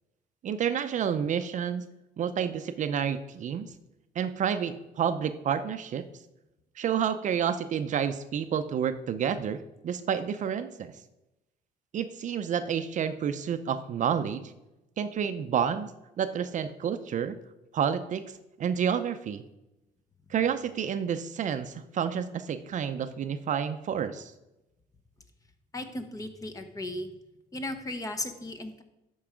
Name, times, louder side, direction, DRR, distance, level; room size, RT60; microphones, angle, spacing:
voice 1, 0.4-1.9 2.2-3.7 4.2-6.1 6.8-10.9 11.9-14.5 15.0-15.9 16.2-17.4 17.7-18.2 18.6-19.4 20.3-24.3, right 8 dB, 45° right, 10 dB, 0.6 m, -29 dB
voice 2, 25.7-27.1 27.5-28.8, left 1 dB, 20° left, 7 dB, 1.0 m, -36 dB
11.5 x 4.7 x 5.0 m, 0.95 s
cardioid pair, 110°, 17 cm